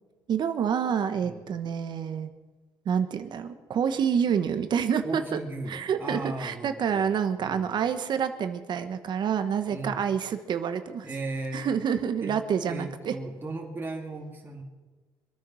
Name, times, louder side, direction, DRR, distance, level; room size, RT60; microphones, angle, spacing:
voice 1, 0.3-2.3 2.8-5.4 5.7-11.1 11.5-13.2, right 7 dB, 55° right, 9 dB, 1.2 m, -28 dB
voice 2, 5.0-7.6 9.7-10.0 11.0-11.7 12.2-12.3 12.7-14.6, right 2 dB, 25° right, 0 dB, 2.5 m, -36 dB
24.5 x 9.4 x 6.3 m, 1.3 s
cardioid pair, 95°, 9 cm